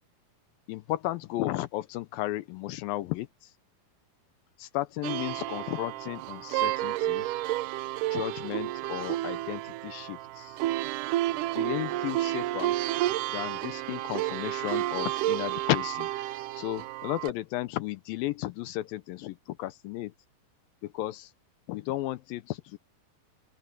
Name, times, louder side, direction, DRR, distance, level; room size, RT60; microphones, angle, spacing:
voice 1, 0.7-3.5 4.6-7.3 8.1-10.6 11.5-12.7 13.3-16.1 16.6-20.1 20.8-21.3 21.7-22.8, left 16 dB, 80° left, 2.3 m, -34 dB
Sitar long, 5.0-17.3, right 15 dB, 90° right, 1.8 m, -31 dB
open air
omnidirectional pair, 4.4 m